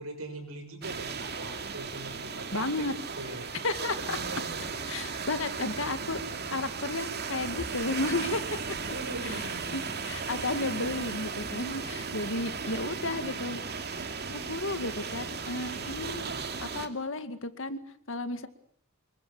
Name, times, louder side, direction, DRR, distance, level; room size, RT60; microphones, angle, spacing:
voice 1, 0.0-2.9 3.2-3.5 4.2-4.9 8.8-9.7, right 2 dB, 85° right, 5 dB, 7.5 m, -41 dB
sound 1, 0.8-16.9, right 5 dB, 50° right, 2.6 m, -36 dB
voice 2, 2.5-2.9 3.6-4.2 4.9-6.2 6.5-8.6 9.2-9.4 9.7-13.6 14.3-16.2 16.6-17.8 18.1-18.5, left 2 dB, 65° left, 10 dB, 2.1 m, -33 dB
26.0 x 23.0 x 8.5 m, 0.64 s
head